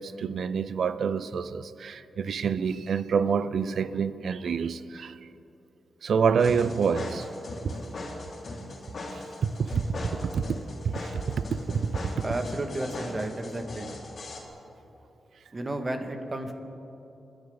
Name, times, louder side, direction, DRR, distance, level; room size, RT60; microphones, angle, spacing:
voice 1, 0.0-5.2 6.0-7.3 7.6-7.8 9.1-10.5 10.9-12.1, right 6 dB, 75° right, 0.5 m, -27 dB
sound 1, 6.4-14.4, left 2 dB, 60° left, 2.7 m, -39 dB
voice 2, 12.2-13.9 15.5-16.5, right 1 dB, 35° right, 1.9 m, -32 dB
26.5 x 10.5 x 4.0 m
cardioid pair, 50°, 0 cm